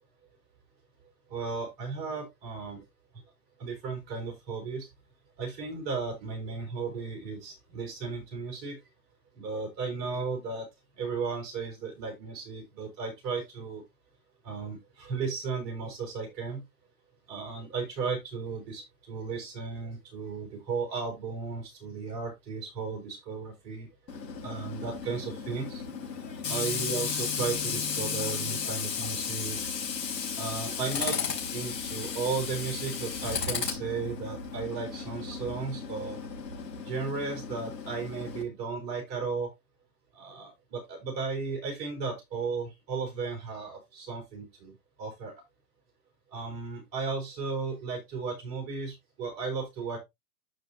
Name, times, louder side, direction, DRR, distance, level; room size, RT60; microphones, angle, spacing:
voice 1, 1.3-2.8 3.6-4.9 5.4-8.8 9.3-10.7 11.0-13.8 14.4-16.6 17.3-23.9 24.4-25.8 26.5-29.7 30.4-31.2 31.5-36.2 36.8-39.5 40.1-44.7 45.0-45.3 46.3-50.0, right 4 dB, 20° right, 1 dB, 4.6 m, -35 dB
Tools, 24.1-38.4, left 6 dB, 80° left, 4.8 m, -34 dB
12.5 x 5.2 x 2.8 m, 0.20 s
hypercardioid pair, 160°, 49 cm